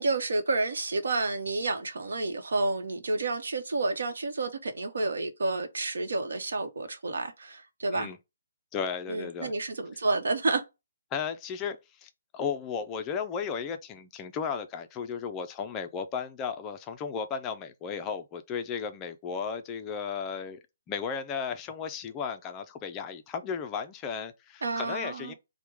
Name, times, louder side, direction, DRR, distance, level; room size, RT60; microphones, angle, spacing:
voice 1, 0.0-8.1 9.1-10.6 24.6-25.3, right 3 dB, 80° right, 0.8 m, -30 dB
voice 2, 8.7-9.5 11.1-25.3, left 6 dB, 15° left, 0.3 m, -35 dB
4.5 x 2.1 x 3.3 m
hypercardioid pair, 170°, 0 cm